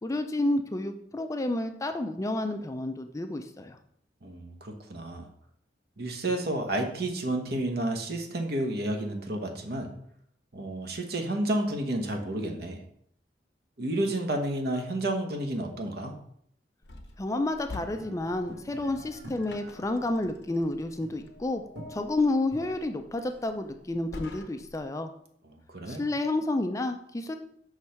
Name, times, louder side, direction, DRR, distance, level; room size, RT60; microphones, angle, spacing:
voice 1, 0.0-3.8 17.2-21.6 21.9-25.1 25.9-27.4, left 2 dB, 20° left, 7 dB, 0.4 m, -30 dB
voice 2, 4.2-5.3 6.0-9.9 10.5-12.8 13.8-16.1 25.5-26.0, right 1 dB, 60° right, 3 dB, 1.0 m, -31 dB
sound 1, 16.8-24.9, left 2 dB, 85° left, 0.8 m, -48 dB
sound 2, 17.7-24.0, right 1 dB, 90° right, 2.3 m, -48 dB
6.1 x 3.2 x 5.7 m, 0.68 s
head